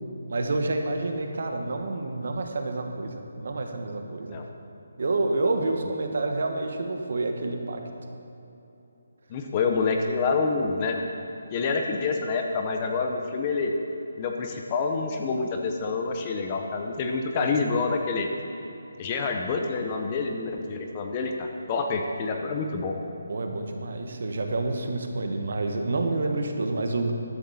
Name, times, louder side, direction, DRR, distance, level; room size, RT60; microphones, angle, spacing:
voice 1, 0.3-4.4 5.0-7.8 17.3-17.7 23.3-27.1, right 2 dB, 55° right, 4 dB, 1.4 m, -28 dB
voice 2, 9.3-11.0 11.5-13.7 14.2-18.3 19.0-22.9, left 4 dB, 20° left, 3 dB, 0.7 m, -27 dB
13.0 x 12.0 x 4.2 m, 3.0 s
hypercardioid pair, 175°, 0 cm